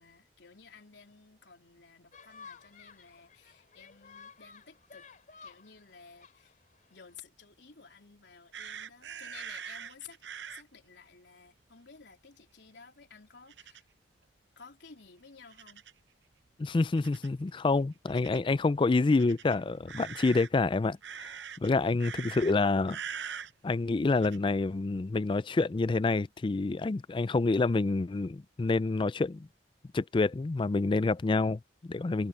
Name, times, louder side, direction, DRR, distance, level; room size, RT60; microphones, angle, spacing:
voice 1, 0.0-5.1 5.4-6.6 6.9-10.2 10.5-13.9 14.6-15.9, left 5 dB, 75° left, 3.8 m, -54 dB
sound 1, 2.1-7.2, left 5 dB, 50° left, 2.9 m, -54 dB
sound 2, 8.5-10.6 13.5-13.8 15.5-16.0 17.0-17.3 18.1-18.4 19.1-20.5 21.0-21.7 22.0-22.5 22.9-23.5 24.1-24.4, right 8 dB, 80° right, 0.7 m, -42 dB
voice 2, 16.6-21.3 21.6-23.0 23.6-29.5 29.9-32.3, left 3 dB, 30° left, 0.4 m, -28 dB
head